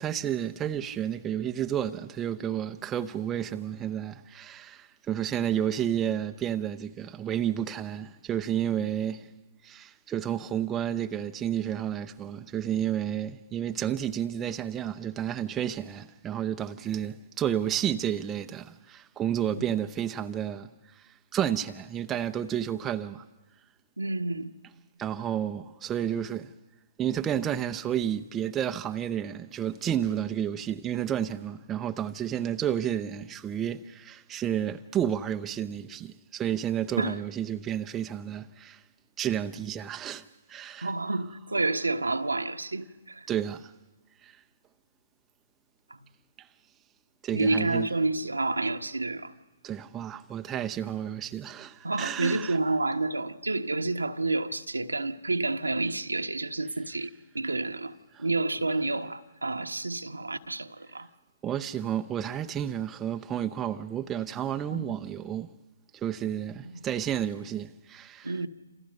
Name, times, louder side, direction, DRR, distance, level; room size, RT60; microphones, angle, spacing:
voice 1, 0.0-9.3 9.6-23.3 25.0-26.5 27.0-38.8 39.2-40.9 43.3-43.7 44.2-44.4 46.4-46.5 47.2-47.9 49.6-52.6 58.1-58.2 61.4-65.5 65.9-68.3, right 10 dB, 15° right, 0.8 m, -31 dB
voice 2, 24.0-24.5 37.0-37.2 37.5-37.6 40.8-43.3 47.3-49.3 51.8-61.1 64.7-64.9 66.6-66.8 68.2-68.5, right 2 dB, 85° right, 1.3 m, -29 dB
29.0 x 27.5 x 5.4 m
figure-of-eight pair, 130°, 0 cm